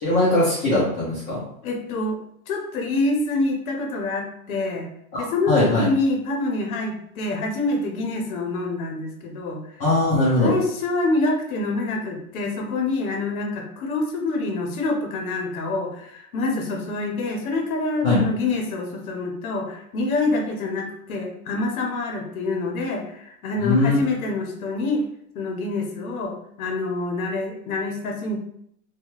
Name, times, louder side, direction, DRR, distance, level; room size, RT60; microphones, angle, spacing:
voice 1, 0.0-1.4 5.1-5.8 9.8-10.5 18.0-18.2 23.6-24.0, left 2 dB, 20° left, -10 dB, 0.6 m, -20 dB
voice 2, 1.6-2.2 2.5-4.9 5.2-9.6 10.4-25.1 25.3-28.4, left 2 dB, 75° left, 2 dB, 0.7 m, -26 dB
2.7 x 2.2 x 3.0 m, 0.70 s
supercardioid pair, 155°, 44 cm